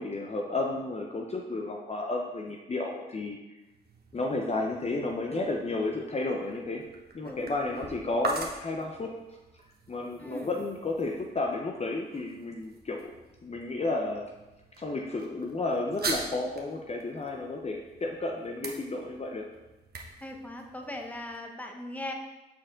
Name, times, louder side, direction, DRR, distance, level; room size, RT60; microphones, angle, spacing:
voice 1, 0.0-3.4 4.1-6.8 7.1-9.1 9.9-13.1 13.4-14.2 14.8-19.4, left 2 dB, 35° left, 1 dB, 0.7 m, -32 dB
sound 1, 3.6-21.4, right 3 dB, 55° right, 1.2 m, -43 dB
voice 2, 7.3-7.9 10.2-10.5 20.2-22.1, left 1 dB, 10° left, 2 dB, 1.1 m, -40 dB
7.4 x 4.3 x 3.7 m, 1.1 s
supercardioid pair, 55°, 19 cm